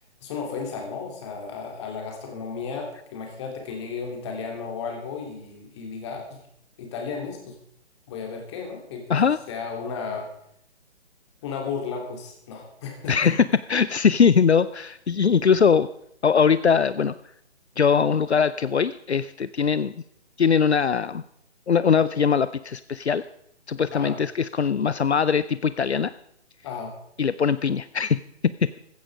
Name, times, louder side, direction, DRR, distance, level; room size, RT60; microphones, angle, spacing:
voice 1, 0.2-6.4 6.8-7.6 8.1-9.2 9.5-10.3 11.4-13.3 23.9-24.2 26.6-26.9, left 5 dB, 25° left, 2 dB, 3.2 m, -34 dB
voice 2, 13.1-15.9 16.2-17.1 17.8-20.0 20.4-21.2 21.7-23.2 23.7-26.1 27.2-28.8, left 6 dB, 70° left, 15 dB, 0.7 m, -21 dB
15.5 x 14.0 x 4.9 m, 0.72 s
figure-of-eight pair, 140°, 34 cm